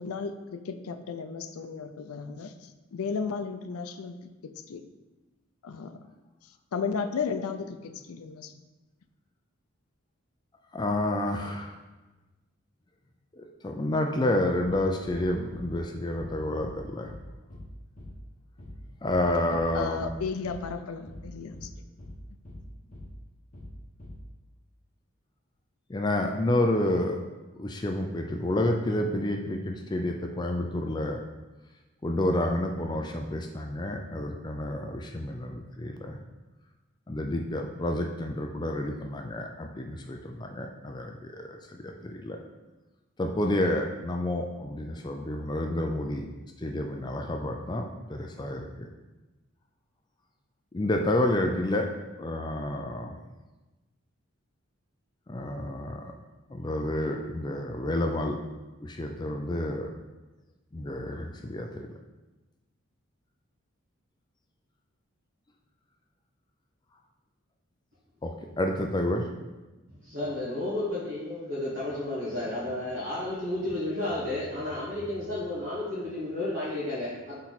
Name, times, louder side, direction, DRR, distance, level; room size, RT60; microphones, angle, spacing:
voice 1, 0.0-4.2 4.4-4.9 5.6-6.0 6.7-8.5 19.2-19.4 19.7-21.7, left 5 dB, 90° left, 9 dB, 0.5 m, -34 dB
voice 2, 10.7-11.8 13.4-17.1 19.0-20.1 25.9-27.2 27.6-31.2 32.0-36.2 37.1-41.5 41.8-42.4 43.2-46.3 46.6-48.7 50.7-51.9 52.2-53.1 55.3-56.0 56.5-58.4 58.8-59.9 60.7-61.9 68.2-69.3, left 1 dB, 20° left, 3 dB, 0.4 m, -29 dB
sound 1, 14.6-14.8 15.0-15.2 15.5-15.7 16.1-16.3 16.6-16.8 17.0-17.2 17.5-17.7 18.0-18.2 18.6-18.8 19.0-19.2 19.5-19.7 20.0-20.2 20.4-20.6 21.1-21.3 21.5-21.7 22.0-22.2 22.4-22.6 22.9-23.1 23.5-23.7 24.0-24.2, left 1 dB, 35° left, 1.3 m, -44 dB
voice 3, 70.0-77.4, left 1 dB, 60° right, -10 dB, 1.9 m, -32 dB
6.1 x 4.3 x 4.1 m, 1.1 s
head